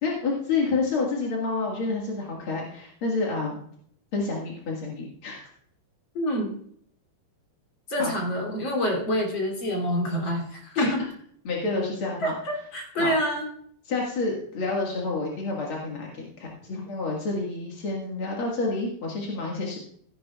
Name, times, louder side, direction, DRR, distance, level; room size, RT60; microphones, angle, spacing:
voice 1, 0.0-3.6 4.1-5.5 8.0-8.1 10.7-10.9 11.4-12.3 13.0-13.1 13.9-19.8, left 3 dB, 50° left, -2 dB, 1.6 m, -29 dB
voice 2, 6.1-6.5 7.9-11.0 12.2-13.5, equal, 30° left, 0 dB, 3.0 m, -27 dB
16.0 x 11.0 x 2.4 m, 0.63 s
omnidirectional pair, 5.1 m